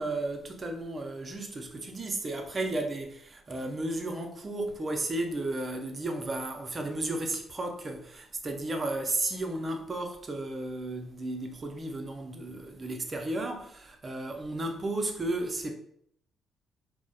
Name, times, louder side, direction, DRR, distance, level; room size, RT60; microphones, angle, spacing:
voice 1, 0.0-15.7, right 2 dB, 30° right, 0.4 m, -33 dB
2.7 x 2.0 x 2.3 m
cardioid pair, 90°, 0 cm